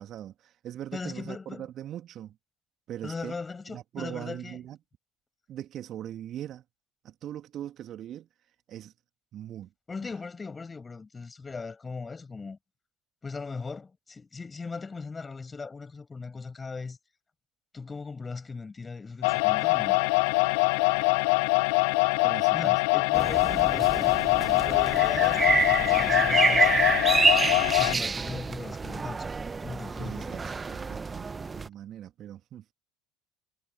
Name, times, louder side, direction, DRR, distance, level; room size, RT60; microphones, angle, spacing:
voice 1, 0.0-2.3 2.9-3.4 3.7-4.8 5.5-6.6 7.0-8.3 8.7-8.9 9.3-9.7 22.2-22.8 30.0-30.4 30.7-32.6, right 11 dB, 45° right, 2.7 m, -40 dB
voice 2, 0.9-1.7 3.0-4.6 9.9-12.6 13.2-17.0 17.7-20.0 22.5-24.2 24.6-26.9 27.8-29.3 29.6-30.4, left 4 dB, 20° left, 6.8 m, -39 dB
sound 1, 19.2-28.0, left 31 dB, 65° left, 0.5 m, -24 dB
sound 2, 23.1-31.7, right 4 dB, 25° right, 1.2 m, -27 dB
figure-of-eight pair, 65°, 0 cm